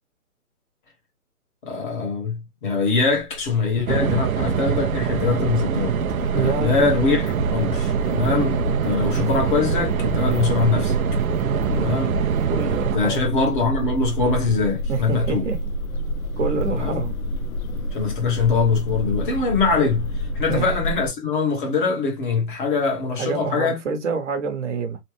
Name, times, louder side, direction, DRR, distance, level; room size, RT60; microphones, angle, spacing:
voice 1, 1.6-6.0 6.3-10.9 11.7-12.1 12.9-15.5 16.7-17.0 17.9-23.8, left 4 dB, 35° left, 1.2 m, -23 dB
sound 1, 3.1-21.1, equal, 65° left, 0.7 m, -28 dB
sound 2, 3.9-13.0, right 8 dB, 70° right, 0.6 m, -24 dB
voice 2, 6.3-6.9 11.3-12.1 12.5-13.3 14.9-15.6 16.4-17.2 20.5-20.7 23.2-25.0, right 5 dB, 50° right, 1.0 m, -27 dB
3.2 x 2.2 x 3.2 m
hypercardioid pair, 145°, 45 cm